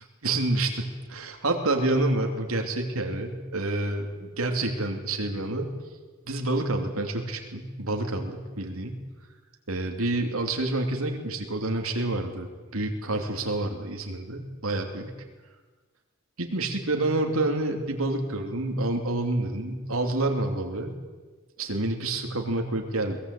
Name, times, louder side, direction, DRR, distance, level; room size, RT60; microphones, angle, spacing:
voice 1, 0.2-5.7 6.3-9.0 9.7-12.5 12.7-15.1 16.4-20.9 21.6-23.2, right 2 dB, 80° right, 3 dB, 2.9 m, -28 dB
22.5 x 19.5 x 8.4 m, 1.4 s
head